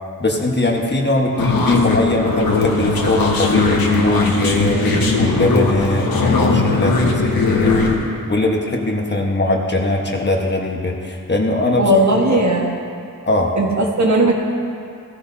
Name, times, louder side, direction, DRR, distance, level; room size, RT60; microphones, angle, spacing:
voice 1, 0.2-7.7 8.3-11.9 12.3-12.4 13.3-13.5, left 2 dB, 30° left, 0 dB, 1.3 m, -20 dB
sound 1, 1.4-7.9, left 3 dB, 85° left, 1.5 m, -18 dB
voice 2, 11.8-12.8 13.6-14.3, right 1 dB, 55° right, 0 dB, 1.5 m, -16 dB
16.0 x 14.5 x 2.8 m, 2.4 s
wide cardioid pair, 120°, 35 cm